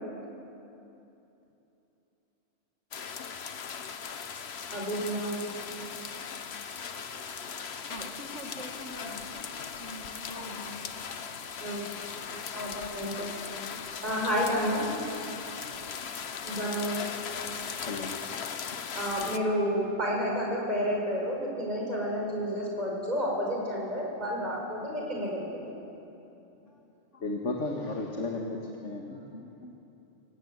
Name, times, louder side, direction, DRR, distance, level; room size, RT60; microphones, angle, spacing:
sound 1, 2.9-19.4, left 6 dB, 65° left, 1.2 m, -39 dB
voice 1, 4.7-5.4 11.6-11.8 12.5-13.3 14.0-14.9 16.4-17.0 18.9-25.5, equal, 35° right, -2 dB, 5.2 m, -30 dB
voice 2, 7.9-9.5 9.8-10.8, equal, 80° right, 1 dB, 2.5 m, -44 dB
voice 3, 17.4-18.4 19.2-19.3 27.1-29.7, left 2 dB, 85° left, 1 dB, 2.1 m, -35 dB
26.5 x 17.5 x 8.1 m, 2.9 s
omnidirectional pair, 1.2 m